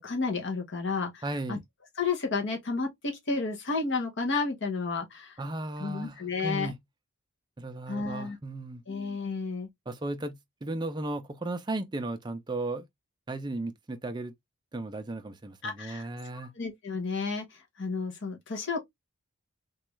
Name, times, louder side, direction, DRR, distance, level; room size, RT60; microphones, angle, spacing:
voice 1, 0.0-1.2 1.5-1.6 2.0-5.4 5.8-6.7 7.9-8.4 8.9-9.7 15.6-16.1 16.5-18.8, left 4 dB, 50° left, 0.7 m, -31 dB
voice 2, 1.2-1.6 5.4-6.8 7.6-8.8 9.9-12.9 13.3-14.3 14.7-16.5, right 2 dB, 20° right, 0.4 m, -35 dB
3.1 x 2.3 x 3.0 m
head